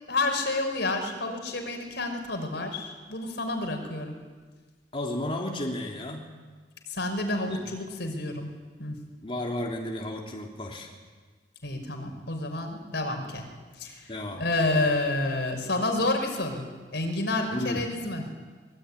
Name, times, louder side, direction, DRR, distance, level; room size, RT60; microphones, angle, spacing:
voice 1, 0.1-4.1 6.9-8.5 8.8-9.0 11.6-13.5 13.8-14.1 14.4-16.6 16.9-18.2, left 2 dB, 70° left, 4 dB, 5.6 m, -29 dB
voice 2, 4.9-6.3 7.5-7.6 9.2-10.9 14.1-14.4 17.5-17.8, left 1 dB, 30° left, -1 dB, 3.4 m, -33 dB
25.5 x 22.0 x 10.0 m, 1.4 s
head